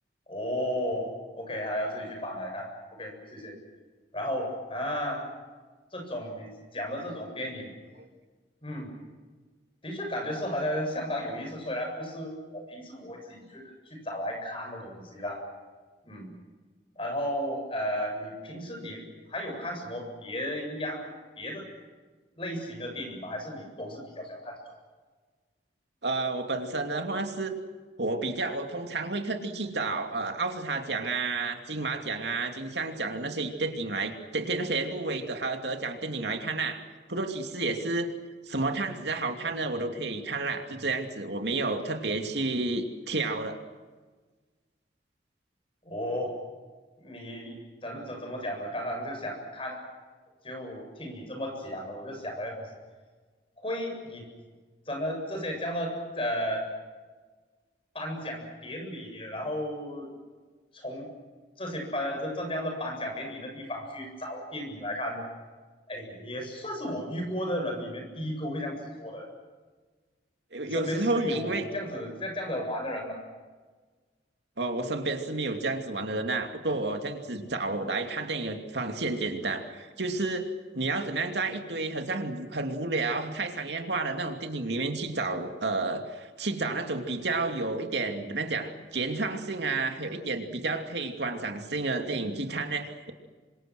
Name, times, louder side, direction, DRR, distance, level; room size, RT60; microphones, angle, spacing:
voice 1, 0.3-3.6 4.1-5.2 5.9-7.7 8.6-8.9 9.8-15.4 16.0-16.3 17.0-19.0 19.3-21.7 22.4-24.6 45.8-46.3 47.0-49.8 50.4-52.7 53.6-54.3 54.9-56.7 57.9-60.1 60.7-61.1 61.6-65.3 65.9-69.3 70.6-73.2, equal, 30° left, 3 dB, 7.7 m, -34 dB
voice 2, 26.0-27.6 28.0-36.8 37.1-38.1 38.5-43.6 70.5-71.7 74.6-93.1, right 3 dB, 75° right, 5 dB, 2.7 m, -31 dB
28.5 x 25.5 x 6.3 m, 1.4 s
head